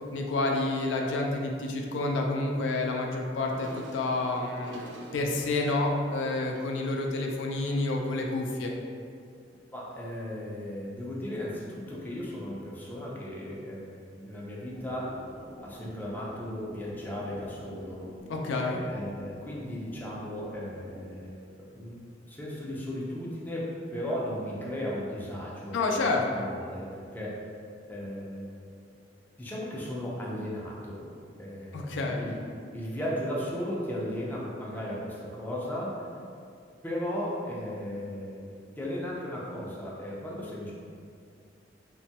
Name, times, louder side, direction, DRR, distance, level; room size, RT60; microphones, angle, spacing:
voice 1, 0.1-8.7 18.3-18.8 25.7-26.5 31.7-32.2, left 2 dB, 75° left, 1 dB, 0.3 m, -29 dB
sound 1, 3.4-8.5, right 3 dB, 75° right, 0.3 m, -49 dB
voice 2, 9.7-15.1 15.6-18.1 18.9-21.4 21.7-23.6 23.9-25.8 26.3-27.3 27.9-28.6 29.4-31.1 31.4-32.4 32.7-36.1 36.8-40.7, equal, 10° left, -5 dB, 0.4 m, -36 dB
sound 2, 14.7-21.1, equal, 35° right, 0.6 m, -49 dB
2.9 x 2.2 x 2.8 m, 2.3 s
head